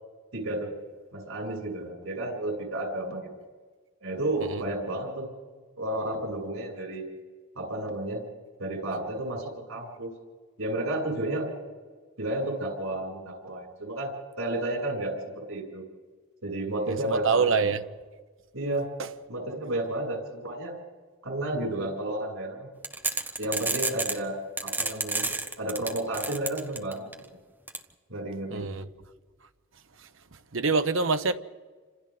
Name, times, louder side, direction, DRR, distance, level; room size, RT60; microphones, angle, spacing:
voice 1, 0.3-0.7 1.1-3.3 4.0-5.3 5.8-7.0 7.5-8.2 8.6-10.1 10.6-11.5 12.2-14.1 14.4-15.8 16.4-17.7 18.5-18.9 19.3-20.7 21.2-22.7 23.4-25.3 25.6-27.1 28.1-28.7, right 1 dB, 90° right, 7.9 m, -32 dB
voice 2, 17.0-17.8 28.5-28.8 30.5-31.4, right 4 dB, 70° right, 0.9 m, -25 dB
sound 1, 22.8-24.2 24.6-27.1 27.7-27.8, right 3 dB, 10° right, 0.9 m, -29 dB
28.5 x 26.5 x 4.0 m
head